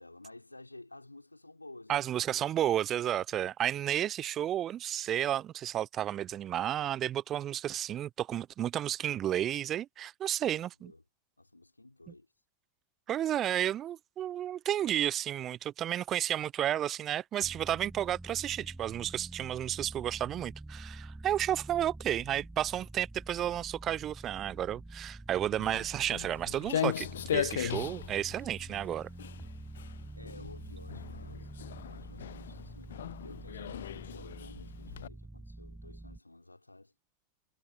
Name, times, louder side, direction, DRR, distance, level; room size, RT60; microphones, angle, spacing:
voice 1, 0.0-2.2 10.5-11.0 11.4-12.3 30.1-31.5 31.9-36.9, left 2 dB, 85° left, 5.5 m, -53 dB
voice 2, 1.9-10.9 13.1-27.1 27.3-29.1, right 11 dB, 30° right, 1.0 m, -32 dB
sound 1, 17.4-26.6 27.0-36.2, right 2 dB, 5° right, 6.2 m, -47 dB
Walk footsteps, 25.6-35.1, left 10 dB, 65° left, 0.7 m, -38 dB
figure-of-eight pair, 90°, 0 cm